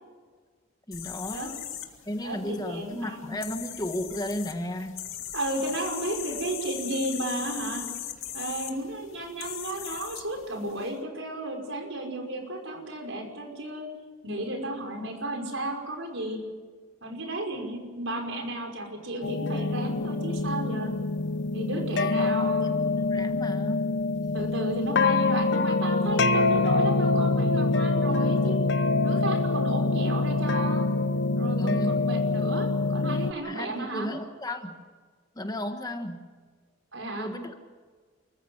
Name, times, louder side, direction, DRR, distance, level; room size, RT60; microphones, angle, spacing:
sound 1, 0.9-10.9, left 11 dB, 80° left, 2.3 m, -39 dB
voice 1, 0.9-1.6 2.0-5.1 21.9-22.7 23.1-23.9 31.6-32.1 33.4-34.9 35.3-36.3 37.2-37.5, left 1 dB, 20° left, 6 dB, 1.4 m, -34 dB
voice 2, 2.2-3.4 5.3-7.8 8.3-13.9 14.2-16.4 17.0-20.9 21.5-22.8 24.3-28.6 29.0-30.9 31.4-34.1 36.9-37.3, right 1 dB, 70° right, 3 dB, 5.7 m, -33 dB
sound 2, 19.2-33.3, left 3 dB, 60° left, 0.9 m, -25 dB
29.5 x 15.0 x 8.1 m, 1.5 s
head